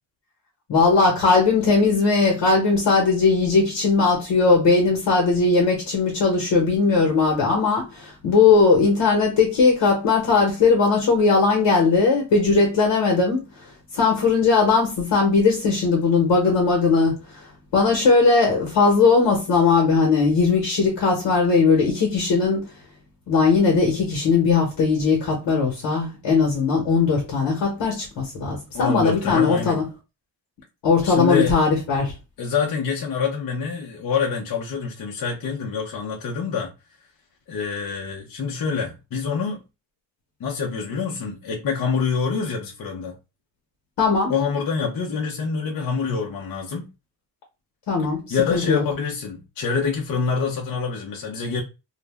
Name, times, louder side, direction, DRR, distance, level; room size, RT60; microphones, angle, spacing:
voice 1, 0.7-13.4 13.9-17.4 17.7-22.7 23.3-29.8 30.8-32.1 44.0-44.3 47.9-48.8, left 4 dB, 75° left, 1.0 m, -19 dB
voice 2, 28.7-29.8 31.0-31.6 32.4-36.7 37.5-39.6 40.4-43.1 44.3-46.9 48.3-51.6, left 5 dB, 50° left, 0.7 m, -26 dB
2.4 x 2.0 x 3.3 m
wide cardioid pair, 150°, 44 cm